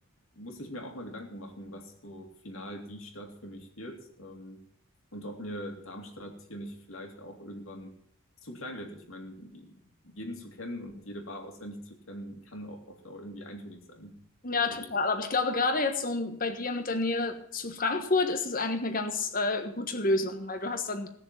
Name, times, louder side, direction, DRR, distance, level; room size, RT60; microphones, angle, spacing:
voice 1, 0.3-4.6 5.1-7.9 8.4-14.1 14.7-14.9, equal, 65° left, 2.5 m, -42 dB
voice 2, 14.4-21.1, left 3 dB, 40° left, 1.3 m, -29 dB
17.5 x 6.7 x 7.4 m
head